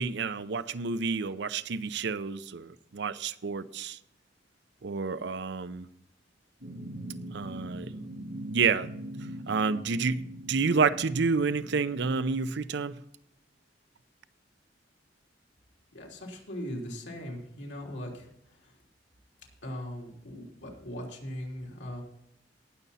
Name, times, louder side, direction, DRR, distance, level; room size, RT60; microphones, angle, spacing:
voice 1, 0.0-4.0 4.8-5.9 7.3-7.9 8.5-8.9 9.5-13.0, right 5 dB, 65° right, 0.6 m, -29 dB
sound 1, 6.6-12.4, right 1 dB, 85° right, 3.2 m, -42 dB
voice 2, 15.9-18.3 18.6-18.7 19.6-22.0, equal, 75° left, 3.2 m, -39 dB
18.5 x 6.9 x 4.1 m
head